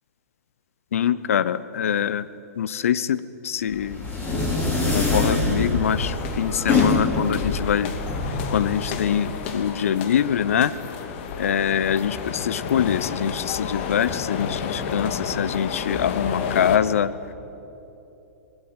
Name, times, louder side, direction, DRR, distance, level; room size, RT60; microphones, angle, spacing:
voice 1, 0.9-2.3 2.5-4.0 4.6-7.9 8.3-10.7 11.4-17.3, left 9 dB, 65° left, 15 dB, 1.0 m, -24 dB
sound 1, 3.7-9.5, left 3 dB, 25° left, 6.0 m, -25 dB
sound 2, 5.8-16.8, left 6 dB, 50° left, 2.4 m, -31 dB
25.0 x 19.5 x 9.8 m, 2.9 s
figure-of-eight pair, 105°, 8 cm